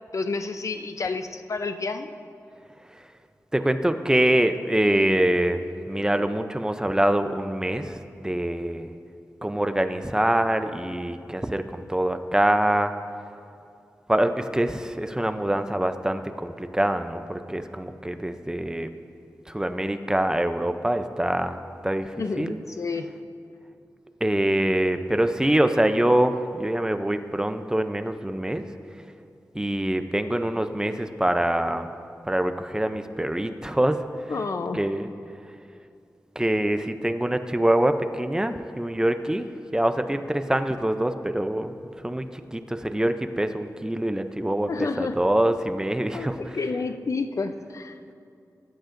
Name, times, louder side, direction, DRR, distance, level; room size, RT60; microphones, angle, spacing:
voice 1, 0.1-2.1 22.2-23.1 34.3-34.9 44.7-45.2 46.1-47.9, left 4 dB, 60° left, 8 dB, 0.6 m, -30 dB
voice 2, 3.5-5.6 5.9-8.0 8.2-8.9 9.4-12.9 14.1-18.9 19.5-22.6 24.2-28.7 29.5-31.9 32.2-34.0 34.7-35.1 36.4-46.6, right 1 dB, 10° right, 8 dB, 0.5 m, -25 dB
21.5 x 11.5 x 2.6 m, 2.5 s
wide cardioid pair, 105°, 6 cm